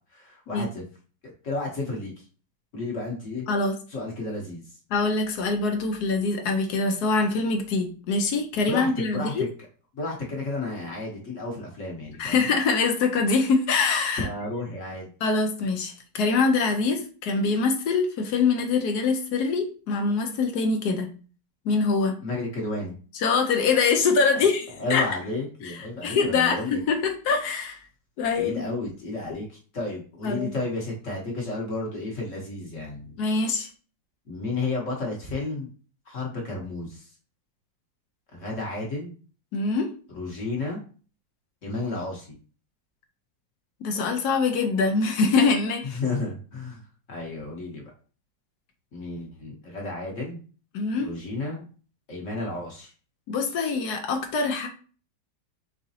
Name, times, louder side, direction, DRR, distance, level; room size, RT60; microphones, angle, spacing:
voice 1, 0.1-0.8 1.2-2.1 2.7-3.4 3.9-4.6 8.6-9.5 9.9-12.4 14.2-15.1 22.2-22.9 24.3-24.5 24.8-26.8 28.4-33.2 34.3-35.7 36.1-37.1 38.3-39.2 40.1-40.8 41.6-42.4 45.8-46.8 47.1-47.9 48.9-50.4 51.0-51.6 52.1-52.9, left 2 dB, 45° left, -2 dB, 1.4 m, -32 dB
voice 2, 4.9-9.5 12.2-14.3 15.2-21.1 21.6-22.1 23.2-25.1 25.6-25.7 26.0-27.8 28.2-28.6 30.2-30.5 33.2-33.7 39.5-39.9 43.8-46.0 50.7-51.1 53.3-54.7, left 4 dB, 65° left, 4 dB, 1.3 m, -24 dB
5.0 x 3.7 x 2.8 m, 0.39 s
omnidirectional pair, 1.9 m